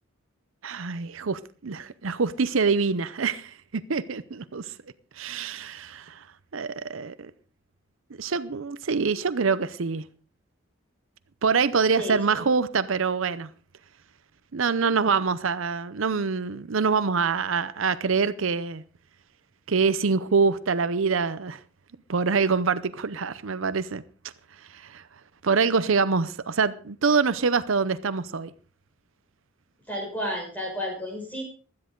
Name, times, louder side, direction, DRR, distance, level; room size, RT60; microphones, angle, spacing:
voice 1, 0.6-4.7 5.2-6.2 6.5-7.3 8.2-10.0 11.4-13.5 14.5-18.8 19.7-21.6 22.1-24.0 24.7-25.0 25.4-28.5, right 5 dB, 75° right, 0.7 m, -25 dB
voice 2, 12.0-12.5 29.9-31.4, equal, 10° left, 5.7 m, -32 dB
16.5 x 12.5 x 3.8 m
head